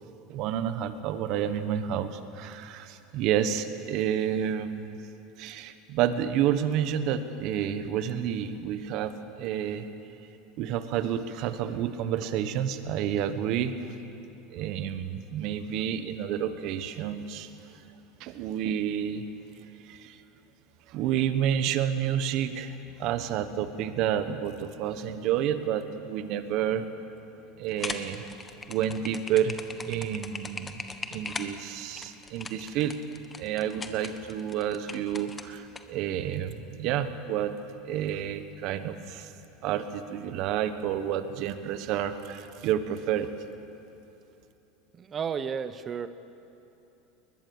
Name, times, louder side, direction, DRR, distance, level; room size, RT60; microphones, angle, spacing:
voice 1, 0.3-5.0 5.4-9.9 10.6-13.7 14.5-17.5 18.2-19.2 19.9-20.2 20.9-26.9 27.6-28.2 28.7-29.6 29.8-30.8 31.1-33.0 33.4-37.5 37.8-39.3 39.6-43.3, right 9 dB, 55° right, 10 dB, 1.3 m, -29 dB
sound 1, 27.7-35.8, left 4 dB, 20° left, 1.3 m, -39 dB
voice 2, 44.9-46.1, right 7 dB, 30° right, 12 dB, 0.8 m, -32 dB
21.0 x 20.5 x 7.2 m, 2.9 s
supercardioid pair, 125°, 0 cm